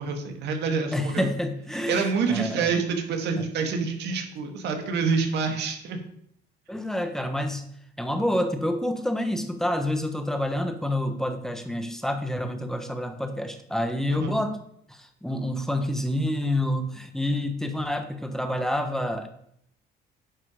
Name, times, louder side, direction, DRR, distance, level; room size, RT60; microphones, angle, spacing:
voice 1, 0.0-1.3 1.9-6.0 14.1-14.4, right 5 dB, 70° right, 4 dB, 1.8 m, -27 dB
voice 2, 0.9-2.7 3.4-3.5 6.7-7.6 8.0-14.6 14.9-19.3, left 1 dB, 5° left, 6 dB, 1.3 m, -28 dB
9.5 x 5.8 x 5.0 m, 0.71 s
cardioid pair, 100°, 18 cm